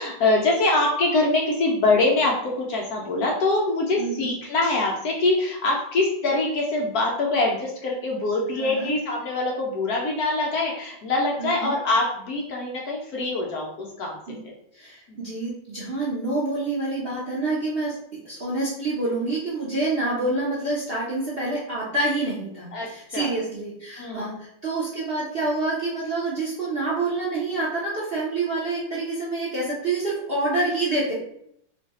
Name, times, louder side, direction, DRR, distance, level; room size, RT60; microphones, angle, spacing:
voice 1, 0.0-13.7 14.0-14.5 15.1-15.2 22.7-23.3 24.0-24.3 28.1-28.2, left 2 dB, 65° left, -2 dB, 1.0 m, -24 dB
voice 2, 4.0-4.3 8.5-8.9 11.4-11.7 14.3-14.4 14.7-17.9 18.2-31.1, right 2 dB, 55° right, -7 dB, 0.6 m, -27 dB
3.2 x 2.4 x 4.0 m, 0.72 s
omnidirectional pair, 2.1 m